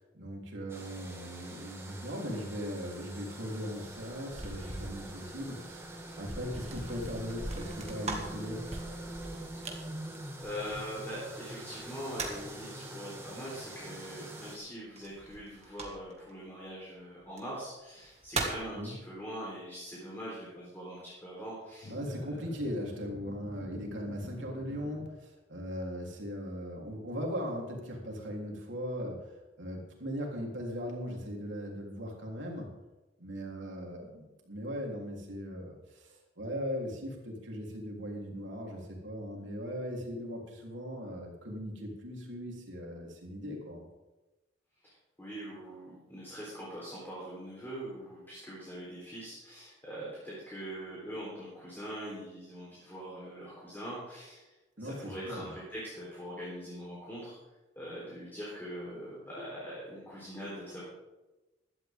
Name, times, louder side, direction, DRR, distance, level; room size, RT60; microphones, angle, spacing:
voice 1, 0.0-5.9 6.2-8.7 18.7-18.9 21.9-29.3 29.6-32.7 33.2-43.9 54.8-55.5, equal, 90° right, -1 dB, 3.5 m, -39 dB
sound 1, 0.7-14.6, right 1 dB, 15° right, 1.9 m, -45 dB
sound 2, 3.7-11.1 11.8-12.6 15.0-16.3 17.2-17.4 17.9-18.7, right 3 dB, 35° right, 2.0 m, -41 dB
voice 2, 10.4-22.3 44.8-57.4 57.8-60.8, equal, 10° left, -6 dB, 3.9 m, -42 dB
sound 3, 21.8-25.1, left 1 dB, 60° left, 1.8 m, -47 dB
16.5 x 12.0 x 3.7 m, 1.1 s
head